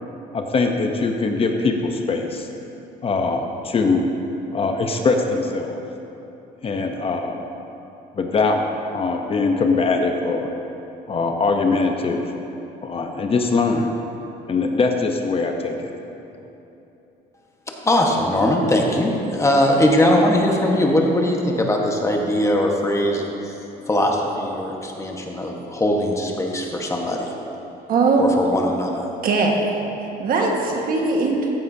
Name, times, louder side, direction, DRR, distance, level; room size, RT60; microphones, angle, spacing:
voice 1, 0.3-2.5 3.0-4.1 4.5-5.8 6.6-7.4 8.2-8.6 8.9-10.5 11.1-12.2 12.8-13.9 14.5-15.9, left 3 dB, 35° left, 3 dB, 0.8 m, -22 dB
voice 2, 17.8-23.6 23.9-27.3 28.2-29.2, left 1 dB, 15° left, 0 dB, 1.3 m, -20 dB
voice 3, 27.9-28.3 29.2-29.7 30.2-31.5, right 3 dB, 60° right, 0 dB, 1.5 m, -20 dB
14.5 x 9.3 x 2.7 m, 2.9 s
cardioid pair, 110°, 17 cm